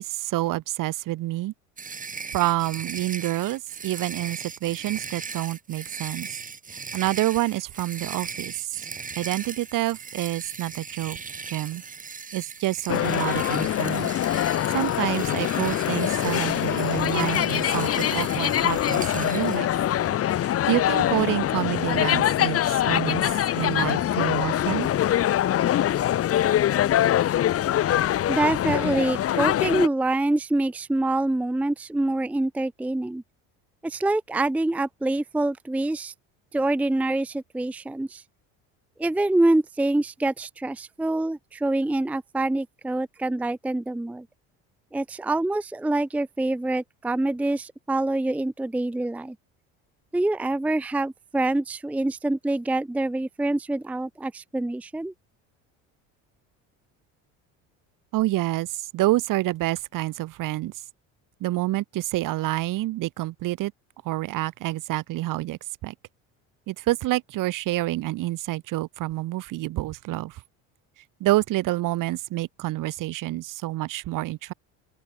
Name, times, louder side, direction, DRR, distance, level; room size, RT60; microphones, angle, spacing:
voice 1, 0.0-1.5 2.3-6.3 6.9-8.5 9.2-11.2 11.5-11.8 12.3-14.1 14.7-19.7 20.4-23.2 23.5-24.9 58.1-60.7 61.4-63.7 64.0-65.9 66.7-70.4 71.2-74.5, right 17 dB, 65° right, 3.4 m, -28 dB
sound 1, 1.8-19.6, right 5 dB, 25° right, 2.1 m, -38 dB
sound 2, 12.9-29.9, left 12 dB, 40° left, 1.0 m, -24 dB
voice 2, 28.3-33.2 33.8-36.1 36.5-38.2 39.0-44.3 44.9-49.4 50.1-55.1, right 2 dB, 5° right, 0.6 m, -25 dB
open air
supercardioid pair, 110°, 35 cm